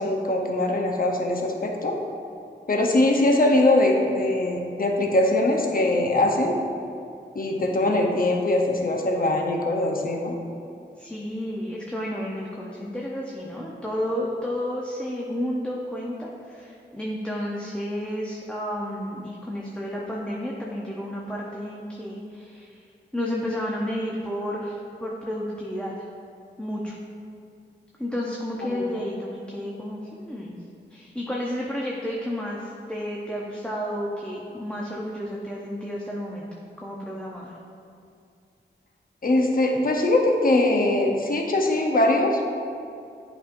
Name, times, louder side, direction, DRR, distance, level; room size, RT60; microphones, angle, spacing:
voice 1, 0.0-1.9 2.7-6.6 7.3-10.4 28.6-28.9 39.2-42.5, left 2 dB, 50° left, 1 dB, 0.8 m, -22 dB
voice 2, 11.0-22.8 23.1-25.9 26.6-27.0 28.0-30.6 30.9-36.5 36.8-37.5, equal, 5° left, -4 dB, 0.7 m, -31 dB
9.8 x 5.4 x 2.6 m, 2.5 s
wide cardioid pair, 70°, 19 cm